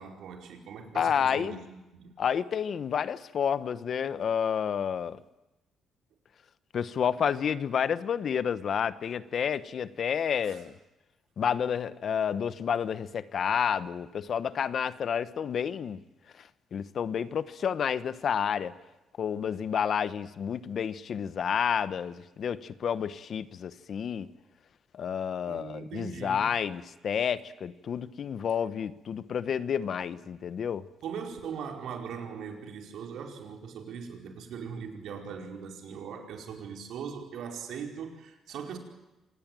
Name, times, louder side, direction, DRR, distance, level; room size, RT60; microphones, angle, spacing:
voice 1, 0.0-2.1 10.4-10.6 25.4-26.5 31.0-38.8, right 6 dB, 75° right, 3 dB, 4.9 m, -40 dB
voice 2, 0.9-1.5 2.2-5.2 6.7-10.7 11.4-16.0 16.4-18.7 19.2-24.3 24.9-30.8, left 7 dB, 55° left, 14 dB, 1.1 m, -30 dB
26.5 x 19.5 x 9.1 m, 1.0 s
cardioid pair, 90°, 0 cm